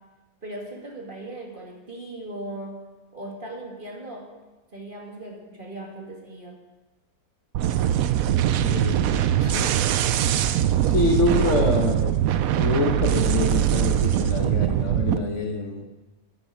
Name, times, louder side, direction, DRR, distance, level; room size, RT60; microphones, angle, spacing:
voice 1, 0.4-2.8 3.1-4.4 4.7-6.6, right 1 dB, 30° right, -1 dB, 2.2 m, -38 dB
sound 1, 7.5-15.2, right 11 dB, 70° right, 1.0 m, -22 dB
voice 2, 8.6-9.7 10.9-12.2 12.6-15.8, left 3 dB, 50° left, 3 dB, 1.4 m, -26 dB
13.0 x 8.9 x 6.1 m, 1.2 s
omnidirectional pair, 1.7 m